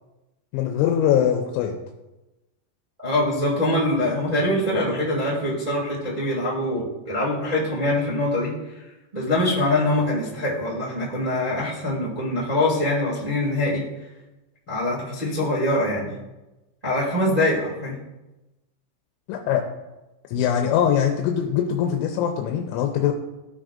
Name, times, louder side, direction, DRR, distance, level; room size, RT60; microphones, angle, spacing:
voice 1, 0.5-1.8 19.3-19.6 20.3-23.1, left 9 dB, 85° left, 3 dB, 3.0 m, -22 dB
voice 2, 3.0-8.8 9.1-13.9 14.7-16.2 16.8-18.0, left 1 dB, 40° right, -7 dB, 0.6 m, -24 dB
15.0 x 6.2 x 2.5 m, 1.0 s
omnidirectional pair, 5.5 m